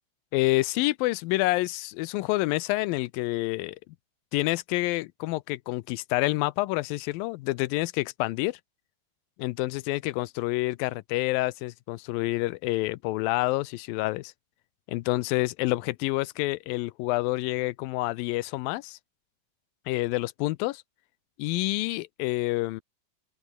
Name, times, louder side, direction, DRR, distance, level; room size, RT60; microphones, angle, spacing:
voice 1, 0.3-3.8 4.3-8.6 9.4-14.3 14.9-19.0 19.9-20.8 21.4-22.8, left 20 dB, 80° left, 2.4 m, -28 dB
open air
omnidirectional pair, 4.2 m